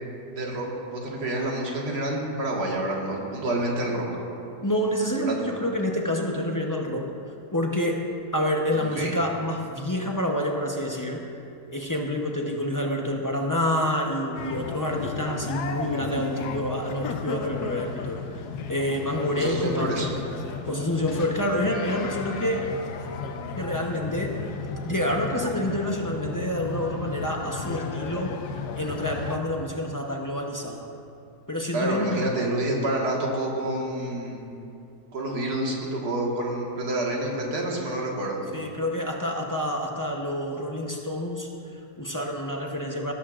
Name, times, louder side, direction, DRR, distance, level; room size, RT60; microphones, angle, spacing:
voice 1, 0.3-4.1 5.2-5.4 9.0-9.1 19.3-20.1 31.7-34.4 35.1-38.4, right 1 dB, 90° right, -2 dB, 2.2 m, -28 dB
voice 2, 4.6-7.2 7.5-11.3 11.7-20.1 20.6-22.7 23.6-24.4 24.8-28.4 28.7-30.9 31.5-32.3 38.5-43.1, left 1 dB, 20° left, 0 dB, 0.5 m, -28 dB
sound 1, 14.3-29.4, left 5 dB, 80° left, 1.3 m, -34 dB
18.0 x 13.0 x 2.5 m, 2.6 s
omnidirectional pair, 1.7 m